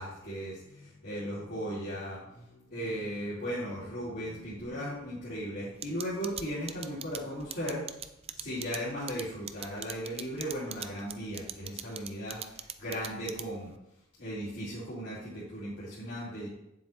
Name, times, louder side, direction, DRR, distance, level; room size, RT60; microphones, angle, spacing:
voice 1, 0.0-7.8 8.3-13.7 14.2-16.5, equal, 60° left, -10 dB, 2.6 m, -37 dB
sound 1, 5.8-13.7, right 9 dB, 30° right, 0.4 m, -40 dB
9.8 x 7.4 x 3.1 m, 0.87 s
head